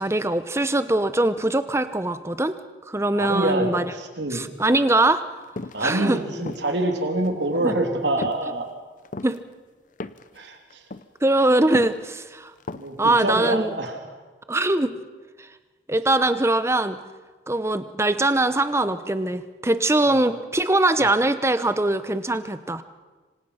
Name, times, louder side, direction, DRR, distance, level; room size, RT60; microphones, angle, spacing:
voice 1, 0.0-2.6 2.9-3.9 4.3-5.2 5.8-6.2 7.5-7.7 9.2-9.4 11.2-12.5 13.0-13.7 14.5-14.9 15.9-17.0 17.5-22.8, right 2 dB, 15° right, 12 dB, 0.9 m, -22 dB
voice 2, 3.1-4.4 5.7-8.7 10.3-10.8 12.7-14.0 20.0-20.2, right 2 dB, 70° right, 3 dB, 3.4 m, -26 dB
sound 1, 5.6-5.9 6.4-6.8 7.2-7.5 8.2-8.5 9.0-9.4 10.0-10.4 10.7-11.1 11.7-12.1 12.6-13.0 13.3-13.4, left 2 dB, 45° left, 0.7 m, -34 dB
27.0 x 25.5 x 5.8 m, 1.3 s
head